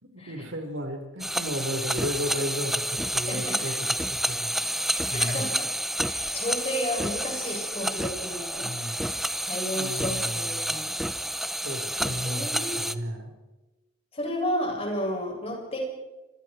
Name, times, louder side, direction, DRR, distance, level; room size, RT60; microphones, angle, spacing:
voice 1, 0.0-4.5 5.1-5.5 8.6-9.0 9.7-10.8 11.6-13.3, equal, 75° right, 4 dB, 4.9 m, -34 dB
sound 1, 1.2-12.9, equal, ahead, 0.9 m, -29 dB
voice 2, 3.3-3.7 5.0-9.1 9.5-11.0 12.0-13.0 14.1-15.8, equal, 30° left, 0 dB, 7.7 m, -33 dB
28.0 x 26.5 x 4.8 m, 1.1 s
head